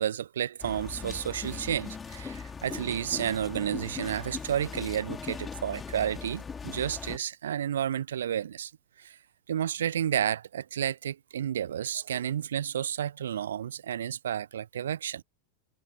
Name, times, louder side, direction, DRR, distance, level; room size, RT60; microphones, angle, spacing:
voice 1, 0.0-8.7 9.0-9.2 9.5-15.2, right 9 dB, 65° right, 1.2 m, -31 dB
sound 1, 0.6-7.2, left 5 dB, 15° left, 4.1 m, -40 dB
figure-of-eight pair, 90°, 0 cm